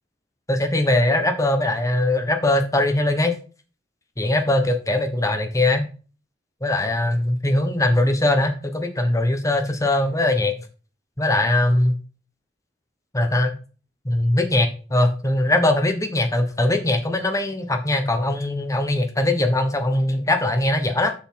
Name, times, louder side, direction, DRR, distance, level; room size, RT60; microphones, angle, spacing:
voice 1, 0.5-3.3 4.2-5.9 6.6-10.5 11.2-11.9 13.1-13.5 14.0-21.1, left 1 dB, 20° left, 6 dB, 1.2 m, -21 dB
7.0 x 5.4 x 4.6 m, 0.36 s
head